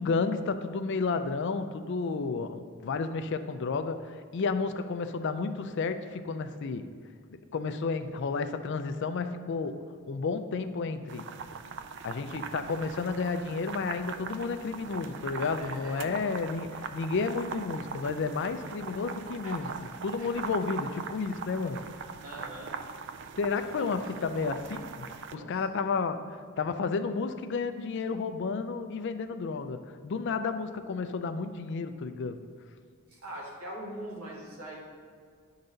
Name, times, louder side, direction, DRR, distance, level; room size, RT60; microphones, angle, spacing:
voice 1, 0.0-6.9 7.5-11.3 12.0-19.7 20.0-21.8 23.4-25.1 25.3-32.4, left 4 dB, 55° left, 10 dB, 0.4 m, -32 dB
sound 1, 11.1-25.3, right 6 dB, 55° right, 0.3 m, -41 dB
voice 2, 15.6-16.2 19.4-19.7 20.2-20.3 22.2-22.8 23.5-24.1 25.3-25.7 33.1-34.8, right 1 dB, 80° right, -4 dB, 1.8 m, -43 dB
10.5 x 4.0 x 3.9 m, 2.1 s
head